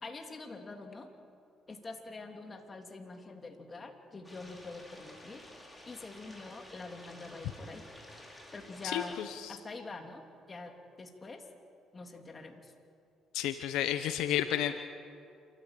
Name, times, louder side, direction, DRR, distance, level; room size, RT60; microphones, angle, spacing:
voice 1, 0.0-1.1 1.7-5.5 5.8-7.8 8.5-9.2 9.5-10.2 10.5-11.4 11.9-12.7, left 3 dB, 30° left, 4 dB, 3.2 m, -45 dB
sound 1, 4.2-9.2, left 1 dB, 10° left, 5.7 m, -52 dB
voice 2, 8.8-9.5 13.3-14.8, left 11 dB, 80° left, 9 dB, 0.9 m, -32 dB
28.0 x 14.5 x 8.9 m, 2.5 s
supercardioid pair, 70°, 0 cm